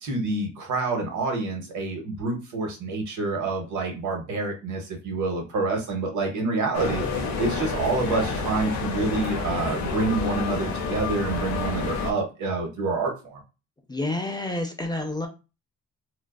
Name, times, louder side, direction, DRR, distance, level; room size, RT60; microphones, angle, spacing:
voice 1, 0.0-13.4, right 3 dB, 75° right, 2 dB, 0.9 m, -27 dB
sound 1, 6.7-12.1, left 4 dB, 65° left, 0.6 m, -29 dB
voice 2, 13.9-15.3, left 2 dB, 15° left, 3 dB, 0.4 m, -29 dB
2.3 x 2.3 x 2.2 m, 0.30 s
cardioid pair, 90°, 30 cm